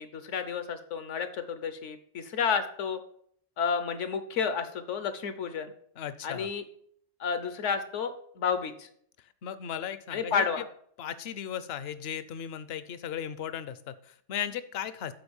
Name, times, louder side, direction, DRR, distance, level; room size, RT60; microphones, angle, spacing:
voice 1, 0.0-3.0 3.6-5.7 6.2-6.6 7.2-8.9 10.1-10.6, left 6 dB, 80° left, 10 dB, 1.2 m, -31 dB
voice 2, 6.0-6.5 9.4-10.5 11.0-15.1, left 9 dB, 65° left, 14 dB, 0.8 m, -36 dB
7.9 x 4.2 x 7.0 m, 0.64 s
omnidirectional pair, 1.2 m